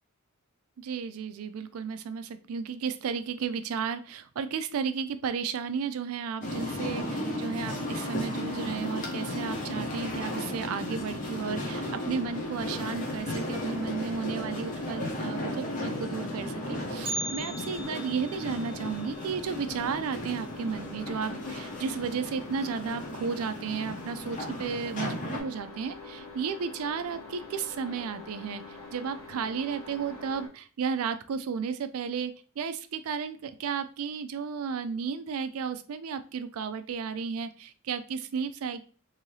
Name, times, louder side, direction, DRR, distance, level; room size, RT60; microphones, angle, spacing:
voice 1, 0.8-38.8, right 6 dB, 70° right, 11 dB, 0.4 m, -33 dB
sound 1, 6.4-25.4, left 1 dB, 35° left, 0.7 m, -35 dB
sound 2, 12.2-30.5, left 3 dB, 60° left, 0.9 m, -45 dB
Bell, 17.0-21.1 21.4-21.5 22.0-22.1 22.9-23.0 23.7-24.0 24.4-24.5, right 2 dB, 25° right, 0.9 m, -40 dB
2.7 x 2.6 x 3.1 m, 0.39 s
head